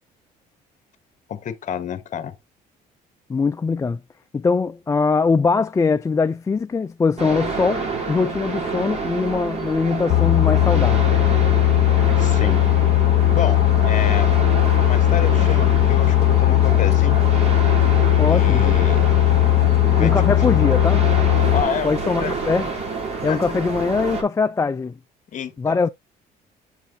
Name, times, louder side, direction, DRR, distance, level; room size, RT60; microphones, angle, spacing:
voice 1, 1.3-2.4 12.2-12.6 13.3-14.4 14.8-17.2 18.3-19.1 19.8-20.7 21.5-22.4 23.3-23.6 25.3-25.9, left 8 dB, 45° left, 1.2 m, -30 dB
voice 2, 3.3-4.0 4.3-11.0 18.2-18.6 20.0-21.0 21.8-22.7 23.2-24.9 25.6-25.9, left 4 dB, 20° left, 0.3 m, -21 dB
sound 1, 7.2-24.2, right 4 dB, 40° right, 3.3 m, -28 dB
Boat Water vehicle, 10.1-21.6, left 14 dB, 70° left, 0.6 m, -17 dB
8.0 x 5.8 x 2.7 m
cardioid pair, 110°, 17 cm